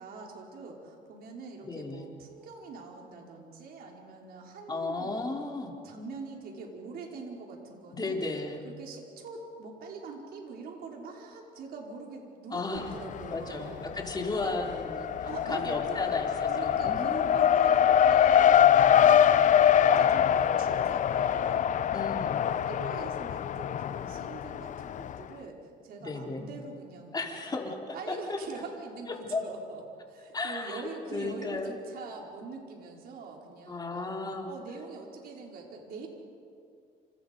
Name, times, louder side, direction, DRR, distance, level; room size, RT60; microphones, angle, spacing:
voice 1, 0.0-5.2 5.8-8.2 8.6-13.9 14.4-14.6 15.2-18.7 19.3-21.7 22.0-27.5 27.9-29.8 30.1-34.1 34.5-36.1, right 4 dB, 65° right, 0 dB, 4.9 m, -43 dB
voice 2, 1.6-2.1 4.7-5.8 7.9-8.6 12.5-13.0 13.3-15.1 15.5-17.4 21.9-22.6 26.0-26.5 27.1-28.4 29.3-29.4 30.3-30.8 31.1-31.8 33.7-34.5, left 3 dB, 25° left, 1 dB, 3.6 m, -34 dB
Race car auto racing, 12.8-13.5 13.8-25.2, left 9 dB, 50° left, 0.7 m, -24 dB
29.0 x 28.0 x 5.4 m, 2.5 s
cardioid pair, 110°, 17 cm